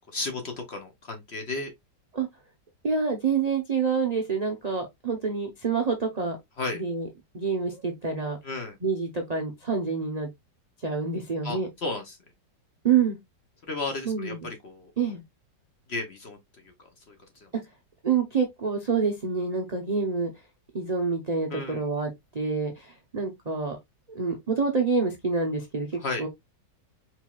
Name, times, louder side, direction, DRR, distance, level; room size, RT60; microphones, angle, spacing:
voice 1, 0.1-1.7 6.6-6.8 8.4-8.8 11.4-12.2 13.6-14.9 15.9-16.4 16.6-17.5 21.5-21.8 25.9-26.2, left 3 dB, 50° left, 0.9 m, -34 dB
voice 2, 2.8-6.4 6.7-7.1 7.3-8.4 8.8-10.3 10.8-11.7 12.8-13.2 14.0-14.5 15.0-15.2 18.0-20.3 20.7-23.8 24.1-26.3, right 5 dB, 55° right, 0.4 m, -27 dB
4.5 x 3.9 x 2.3 m
omnidirectional pair, 1.9 m